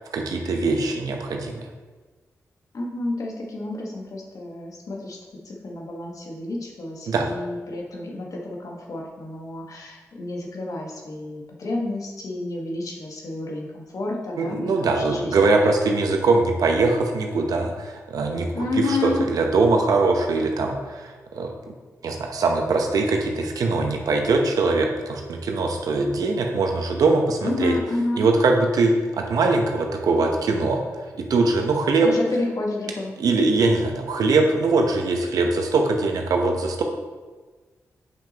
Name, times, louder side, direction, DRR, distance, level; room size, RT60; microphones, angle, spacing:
voice 1, 0.1-1.6 7.1-7.3 14.4-21.5 22.0-27.7 28.2-30.8 31.3-32.1 33.2-36.8, right 3 dB, 80° right, 3 dB, 0.9 m, -22 dB
voice 2, 2.7-5.2 5.4-15.5 18.5-19.2 27.4-28.3 32.0-33.2, left 2 dB, 65° left, -1 dB, 1.4 m, -30 dB
7.1 x 6.1 x 2.9 m, 1.3 s
cardioid pair, 50°, 6 cm